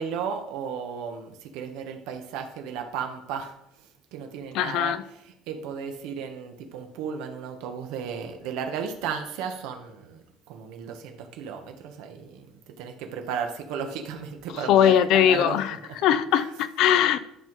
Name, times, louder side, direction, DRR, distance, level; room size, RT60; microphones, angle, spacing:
voice 1, 0.0-3.5 4.1-5.0 5.3-15.6 16.3-16.5, right 7 dB, 70° right, 5 dB, 1.3 m, -34 dB
voice 2, 4.5-5.0 14.7-17.3, left 10 dB, 55° left, 13 dB, 0.5 m, -21 dB
10.5 x 5.7 x 4.7 m, 0.78 s
cardioid pair, 170°, 0 cm